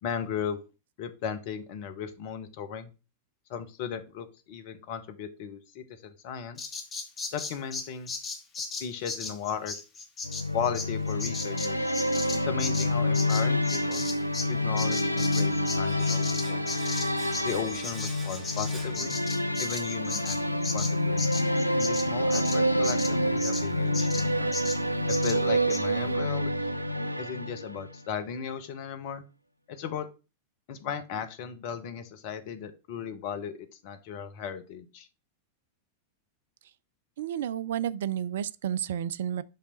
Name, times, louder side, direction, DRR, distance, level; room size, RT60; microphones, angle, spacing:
voice 1, 0.0-0.6 1.0-2.9 3.5-6.7 7.3-8.1 8.8-9.7 10.5-11.9 12.3-14.1 14.5-16.8 17.4-19.2 19.6-21.2 21.7-24.5 25.1-26.7 27.2-29.2 29.7-30.1 30.7-35.1, left 7 dB, 50° left, 0.9 m, -36 dB
Bird vocalization bird call bird song, 6.6-14.5 14.8-23.7 23.9-24.3 24.5-24.8 25.1-25.4 25.7-25.8, left 4 dB, 25° left, 1.2 m, -36 dB
sound 1, 10.2-28.0, left 1 dB, 90° left, 0.3 m, -28 dB
Domestic sounds home sounds, 15.8-19.7 19.9-20.1, right 2 dB, 15° right, 1.9 m, -46 dB
voice 2, 37.2-39.4, right 10 dB, 60° right, 0.3 m, -31 dB
5.5 x 3.3 x 5.1 m
figure-of-eight pair, 90°, 0 cm